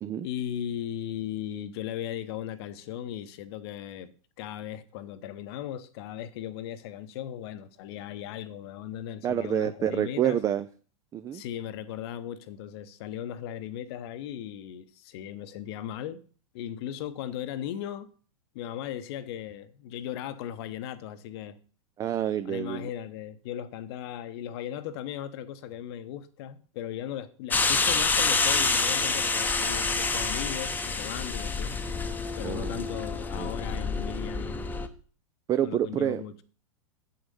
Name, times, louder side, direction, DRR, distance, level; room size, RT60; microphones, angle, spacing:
voice 1, 0.2-10.4 11.3-16.2 16.5-18.1 18.5-21.6 22.4-31.7 32.3-34.6 35.6-36.3, left 10 dB, 50° left, 0.8 m, -37 dB
voice 2, 9.2-10.7 11.1-11.4 22.0-22.9 32.4-32.8 33.3-33.5 35.5-36.2, right 10 dB, 20° right, 0.4 m, -28 dB
sound 1, 27.5-34.9, left 4 dB, 10° left, 0.8 m, -27 dB
7.9 x 6.5 x 5.5 m
figure-of-eight pair, 100°, 18 cm